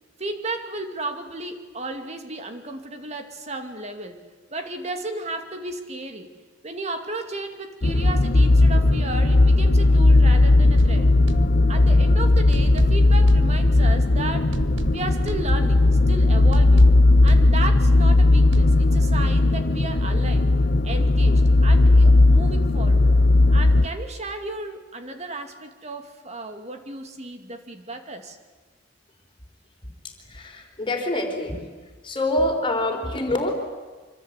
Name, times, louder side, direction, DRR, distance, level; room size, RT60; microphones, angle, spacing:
voice 1, 0.2-4.2 4.5-6.3 6.6-11.1 11.7-14.5 14.9-16.9 17.2-20.5 20.8-23.1 23.5-28.4, right 2 dB, 35° right, 6 dB, 2.5 m, -34 dB
sound 1, 7.8-23.9, left 2 dB, 50° left, 0.9 m, -17 dB
sound 2, 10.8-12.1 12.5-14.1 14.5-16.1 16.5-18.1 18.5-18.8, right 2 dB, 75° right, 1.1 m, -33 dB
voice 2, 30.3-31.6 32.0-33.5, left 1 dB, 25° left, 3 dB, 4.2 m, -25 dB
25.5 x 25.0 x 8.3 m, 1.4 s
head